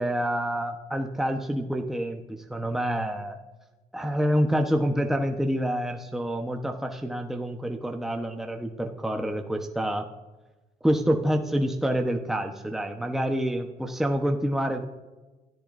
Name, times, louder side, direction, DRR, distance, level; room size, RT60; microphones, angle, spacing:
voice 1, 0.0-3.4 3.9-10.1 10.8-14.8, equal, ahead, 3 dB, 1.1 m, -27 dB
28.0 x 14.0 x 2.7 m, 1.2 s
cardioid pair, 110°, 17 cm